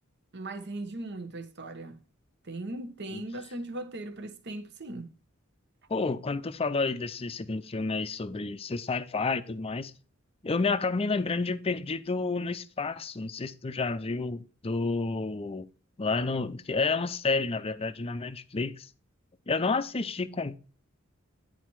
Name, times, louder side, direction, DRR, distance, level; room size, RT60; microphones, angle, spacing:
voice 1, 0.3-2.0 2.5-5.1, right 2 dB, 55° right, 1.1 m, -38 dB
voice 2, 5.9-9.9 10.4-15.7 16.0-18.9 19.5-20.6, left 3 dB, 30° left, 0.5 m, -30 dB
10.0 x 4.1 x 4.5 m
head